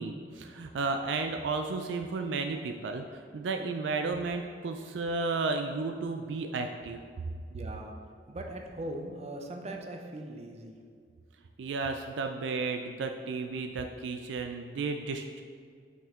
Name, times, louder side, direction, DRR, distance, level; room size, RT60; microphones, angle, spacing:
voice 1, 0.0-7.0 11.6-15.4, right 3 dB, 75° right, 6 dB, 0.4 m, -33 dB
voice 2, 7.5-7.9 8.3-10.8, right 1 dB, 35° right, 2 dB, 0.6 m, -40 dB
5.4 x 5.4 x 3.6 m, 2.1 s
head